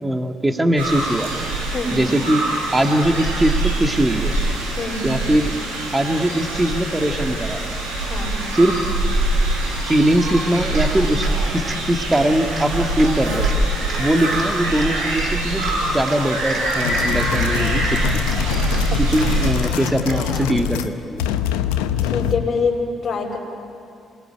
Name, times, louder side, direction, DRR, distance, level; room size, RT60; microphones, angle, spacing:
voice 1, 0.0-1.3 1.9-2.4 2.7-4.4 5.0-5.5 5.9-7.6 8.5-8.8 9.9-11.2 11.5-13.5 14.0-18.2 19.0-21.3, right 1 dB, 15° right, 5 dB, 2.2 m, -21 dB
sound 1, 0.8-19.5, right 2 dB, 90° right, 6.4 m, -24 dB
voice 2, 1.7-2.0 4.8-5.1 8.1-8.5 18.9-19.4 22.0-23.4, left 4 dB, 40° left, -6 dB, 5.4 m, -25 dB
Cheering, 10.2-11.8 12.1-13.6 13.9-15.3 15.6-17.1 17.3-18.8 19.1-20.5, right 3 dB, 45° right, 3.7 m, -35 dB
sound 2, 16.7-20.9 21.2-22.5, left 10 dB, 80° left, 1.0 m, -24 dB
28.0 x 21.0 x 9.0 m, 2.5 s
hypercardioid pair, 45°, 0 cm